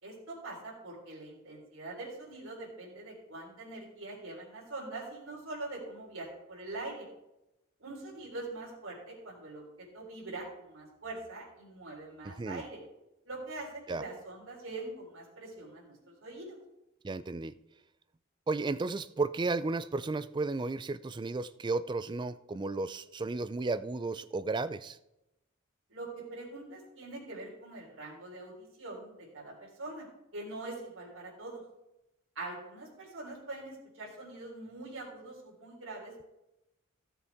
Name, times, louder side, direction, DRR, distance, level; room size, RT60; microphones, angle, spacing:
voice 1, 0.0-7.1 7.8-9.6 9.9-12.8 13.3-16.6 25.9-30.1 30.3-31.6 32.4-36.3, right 2 dB, 75° right, -4 dB, 3.7 m, -43 dB
voice 2, 12.2-12.6 13.9-14.0 17.0-17.5 18.5-25.0, right 3 dB, 20° right, 15 dB, 0.3 m, -33 dB
16.0 x 7.0 x 3.5 m, 0.91 s
head